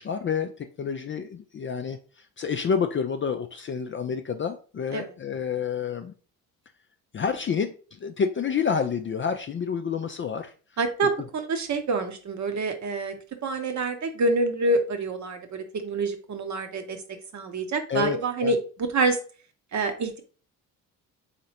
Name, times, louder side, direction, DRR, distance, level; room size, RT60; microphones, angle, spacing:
voice 1, 0.0-2.0 2.4-6.1 7.1-10.5 17.9-18.5, left 6 dB, 30° left, 6 dB, 0.4 m, -29 dB
voice 2, 10.8-13.1 13.4-17.0 17.3-19.2 19.7-20.2, right 3 dB, 40° right, 7 dB, 0.9 m, -27 dB
3.8 x 3.3 x 2.8 m, 0.38 s
hypercardioid pair, 50°, 44 cm